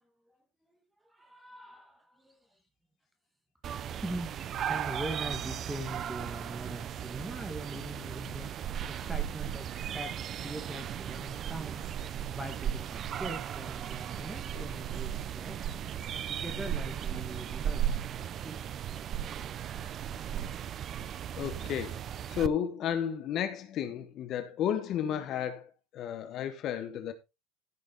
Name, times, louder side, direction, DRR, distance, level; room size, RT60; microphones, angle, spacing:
voice 1, 1.1-2.4 4.0-11.9 12.3-15.6 16.3-17.9 18.4-18.7, right 1 dB, 5° right, 2.1 m, -42 dB
sound 1, 3.6-22.5, right 9 dB, 30° right, 0.6 m, -36 dB
voice 2, 21.3-27.1, left 9 dB, 35° left, 1.1 m, -33 dB
15.0 x 6.2 x 4.0 m
supercardioid pair, 160°, 0 cm